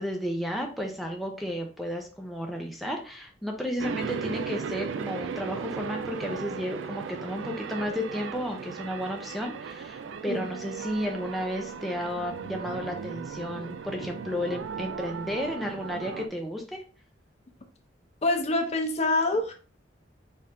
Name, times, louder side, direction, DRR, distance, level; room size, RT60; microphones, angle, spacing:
voice 1, 0.0-16.8, equal, ahead, 1 dB, 0.6 m, -33 dB
sound 1, 3.8-16.3, right 6 dB, 90° right, 0.4 m, -36 dB
voice 2, 18.2-19.5, left 2 dB, 35° left, 5 dB, 0.7 m, -26 dB
4.5 x 2.6 x 3.4 m, 0.35 s
head